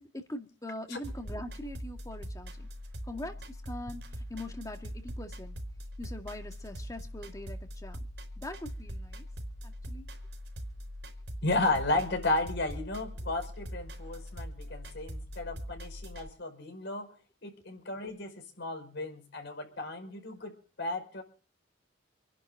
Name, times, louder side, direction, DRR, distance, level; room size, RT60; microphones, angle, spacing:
voice 1, 0.0-2.7 3.1-5.6 6.0-8.0 8.4-9.3 9.6-10.1, left 1 dB, 20° left, 2.2 m, -42 dB
sound 1, 1.0-16.3, equal, 65° right, 4.4 m, -42 dB
voice 2, 11.4-17.1 17.4-21.2, left 2 dB, 65° left, 5.3 m, -33 dB
28.0 x 11.0 x 3.8 m
head